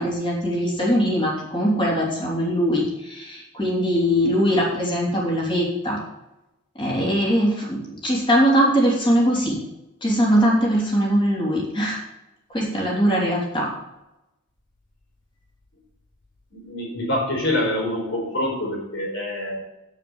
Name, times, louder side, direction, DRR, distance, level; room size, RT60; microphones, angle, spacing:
voice 1, 0.0-6.0 6.7-9.5 10.0-12.0 12.5-13.7, equal, 20° left, -3 dB, 3.5 m, -21 dB
voice 2, 16.5-19.6, left 1 dB, 55° left, -1 dB, 4.7 m, -26 dB
8.4 x 7.3 x 7.2 m, 0.94 s
head